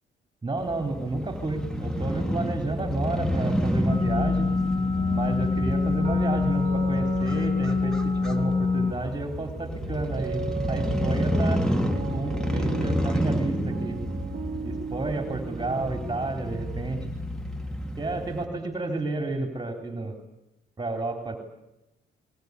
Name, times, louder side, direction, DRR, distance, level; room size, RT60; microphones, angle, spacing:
voice 1, 0.4-4.5 5.1-10.4 10.7-11.6 12.1-14.0 14.6-17.0 18.0-20.1 20.8-21.4, right 2 dB, 20° right, 5 dB, 3.7 m, -31 dB
Crow / Motorcycle, 0.6-18.4, equal, 5° left, 2.9 m, -30 dB
sound 1, 3.9-8.9, left 4 dB, 20° left, 1.5 m, -25 dB
sound 2, 4.9-17.0, right 5 dB, 40° right, 1.8 m, -37 dB
22.0 x 21.5 x 9.7 m, 0.90 s
cardioid pair, 90°, 20 cm